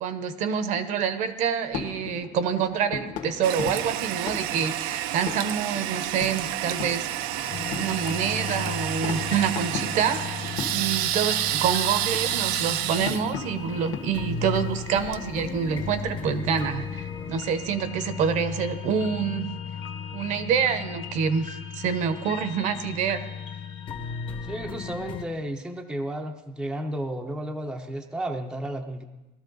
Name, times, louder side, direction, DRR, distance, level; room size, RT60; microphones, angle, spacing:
voice 1, 0.0-7.1 7.7-10.4 10.7-19.5 20.1-23.2, right 7 dB, 50° right, 11 dB, 0.9 m, -27 dB
sound 1, 1.7-15.2, left 6 dB, 50° left, 1.5 m, -39 dB
Toilet flush, 3.4-16.1, right 13 dB, 70° right, 0.5 m, -30 dB
sound 2, 7.5-25.2, left 6 dB, 30° left, 1.1 m, -36 dB
voice 2, 24.4-29.0, right 1 dB, 5° right, 3 dB, 0.6 m, -33 dB
19.0 x 13.5 x 4.0 m, 1.0 s
cardioid pair, 170°, 16 cm